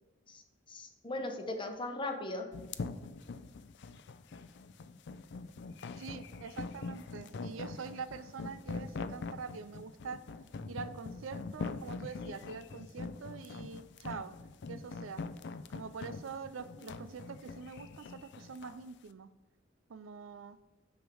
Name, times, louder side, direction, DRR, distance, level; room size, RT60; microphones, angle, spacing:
voice 1, 0.7-2.5 17.0-17.1, left 2 dB, 25° left, 5 dB, 0.9 m, -38 dB
sound 1, 2.5-18.8, left 4 dB, 60° left, 0.4 m, -43 dB
voice 2, 6.0-10.2 10.7-14.3 14.7-15.2 15.7-19.3 19.9-20.6, right 5 dB, 80° right, 13 dB, 0.5 m, -45 dB
9.0 x 3.7 x 6.1 m, 1.1 s
head